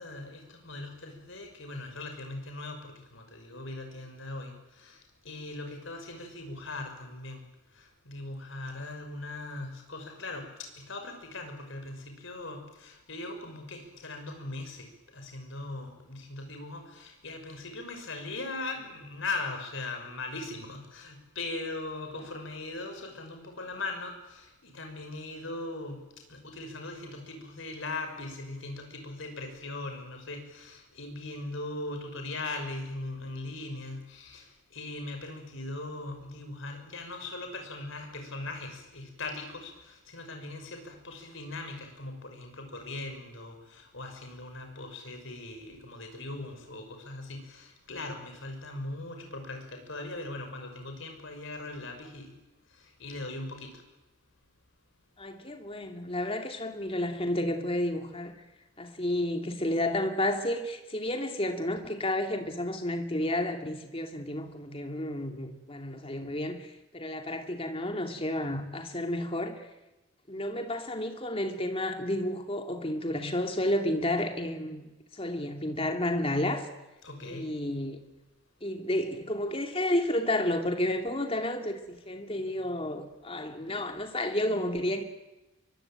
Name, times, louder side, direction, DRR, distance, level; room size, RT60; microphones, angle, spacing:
voice 1, 0.0-5.0 5.2-7.4 7.7-26.0 26.3-52.4 52.7-53.8 77.0-77.5, left 2 dB, 60° left, 6.1 m, -40 dB
voice 2, 55.2-58.4 58.8-69.6 70.3-74.9 75.1-76.7 77.3-78.0 78.6-85.0, left 1 dB, 25° left, 2.6 m, -31 dB
23.5 x 23.0 x 9.0 m
head